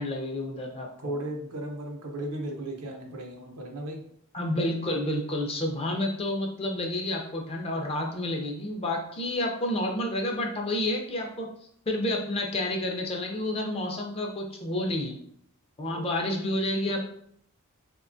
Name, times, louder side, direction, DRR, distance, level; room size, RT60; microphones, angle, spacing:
voice 1, 0.0-1.1 4.3-11.5 11.9-15.2 15.8-17.0, left 1 dB, 25° left, 1 dB, 0.4 m, -30 dB
voice 2, 1.0-4.0 15.8-16.1, right 1 dB, 85° right, 1 dB, 0.6 m, -35 dB
2.9 x 2.2 x 2.5 m, 0.66 s
head